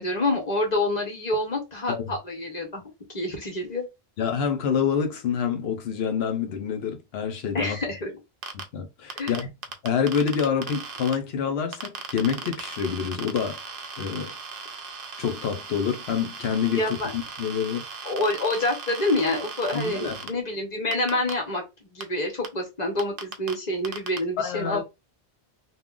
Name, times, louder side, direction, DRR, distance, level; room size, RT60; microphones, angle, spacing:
voice 1, 0.0-2.8 3.1-3.9 7.5-8.1 9.2-9.3 16.7-17.1 18.0-24.8, left 2 dB, 40° left, 1.0 m, -27 dB
voice 2, 4.2-7.8 8.5-9.5 9.8-13.6 14.0-14.3 15.2-16.8 17.1-17.8 19.7-20.2 24.4-24.8, left 7 dB, 75° left, 0.9 m, -27 dB
sound 1, 8.4-8.6 9.1-11.1 11.7-20.3 20.9-21.3 22.0-22.1 22.4-22.5 23.0-23.5 23.8-24.2, right 5 dB, 65° right, 0.7 m, -37 dB
2.3 x 2.1 x 3.6 m
omnidirectional pair, 1.1 m